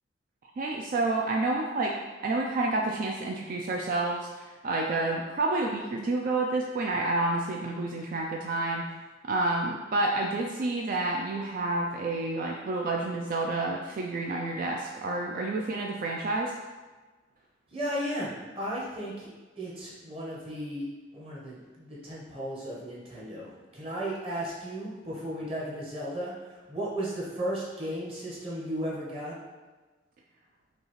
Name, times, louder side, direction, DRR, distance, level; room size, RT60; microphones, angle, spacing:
voice 1, 0.6-1.9 2.2-8.8 9.2-16.6, right 2 dB, 50° right, 0 dB, 0.3 m, -29 dB
voice 2, 17.7-19.3 19.6-20.9 21.1-29.3, equal, 30° right, -6 dB, 1.0 m, -35 dB
5.1 x 2.4 x 3.1 m, 1.3 s
head